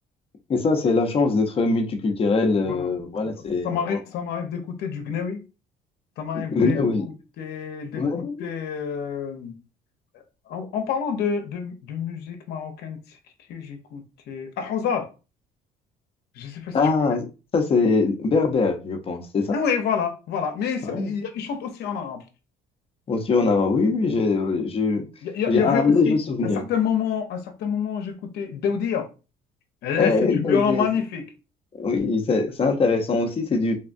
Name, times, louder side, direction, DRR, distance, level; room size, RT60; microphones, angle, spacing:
voice 1, 0.5-4.0 6.3-7.1 7.9-8.5 16.7-17.3 17.5-19.6 20.8-21.1 23.1-25.0 25.5-26.7 30.0-30.9 31.8-33.8, left 4 dB, 35° left, 0.6 m, -22 dB
voice 2, 3.6-5.4 6.2-9.5 10.5-13.0 13.5-15.1 16.4-16.8 19.5-22.2 25.2-26.2 26.5-29.1 29.8-31.2, left 7 dB, 75° left, 0.7 m, -28 dB
3.5 x 2.2 x 2.5 m
cardioid pair, 110°, 17 cm